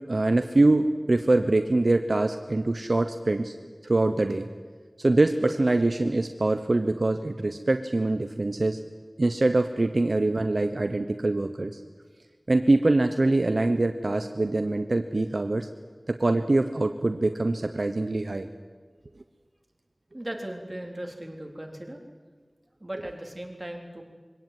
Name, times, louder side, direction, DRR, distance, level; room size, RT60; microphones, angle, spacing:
voice 1, 0.1-3.5 3.8-4.5 5.0-8.8 9.2-11.8 12.5-15.7 16.1-18.5, right 2 dB, 65° right, 8 dB, 1.0 m, -24 dB
voice 2, 20.1-22.0 22.8-24.0, right 1 dB, 30° right, 2 dB, 3.7 m, -37 dB
23.0 x 17.0 x 9.2 m, 1.5 s
wide cardioid pair, 50°, 0 cm